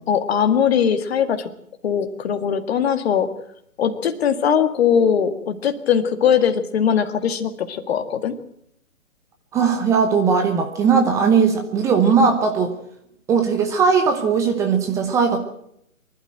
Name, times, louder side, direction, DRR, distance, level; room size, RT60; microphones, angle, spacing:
voice 1, 0.1-1.5 1.8-3.3 3.8-8.4, left 8 dB, 45° left, 9 dB, 1.9 m, -20 dB
voice 2, 9.5-12.7 13.3-15.4, right 5 dB, 5° right, 4 dB, 0.8 m, -18 dB
24.0 x 12.0 x 9.0 m, 0.74 s
figure-of-eight pair, 140°, 44 cm